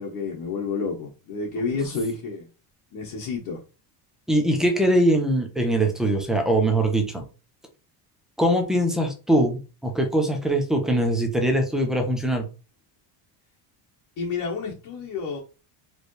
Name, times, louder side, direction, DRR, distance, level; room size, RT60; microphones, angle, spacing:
voice 1, 0.0-2.5 2.9-3.6 14.2-15.4, left 4 dB, 45° left, 1.1 m, -30 dB
voice 2, 4.3-7.2 8.4-12.5, right 1 dB, ahead, 0.5 m, -22 dB
4.5 x 3.3 x 3.2 m
cardioid pair, 180°, 46 cm